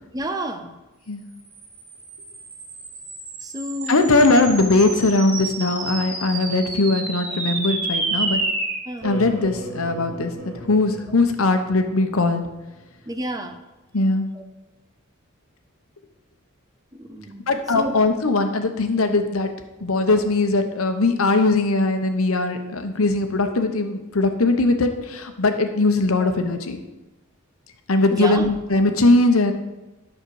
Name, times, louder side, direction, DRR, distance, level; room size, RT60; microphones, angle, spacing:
voice 1, 0.1-0.8 3.4-4.0 8.9-9.1 13.1-13.6 14.3-14.4 17.0-18.0 20.8-20.9 26.2-26.3 28.1-28.5, right 1 dB, 15° right, 7 dB, 0.6 m, -30 dB
sound 1, 1.5-12.2, right 2 dB, 80° right, 3.1 m, -31 dB
voice 2, 3.9-8.4 9.0-12.5 13.9-14.3 17.5-19.5 19.8-26.8 27.9-29.5, left 2 dB, 80° left, 7 dB, 1.0 m, -20 dB
9.6 x 6.4 x 4.8 m, 1.1 s
head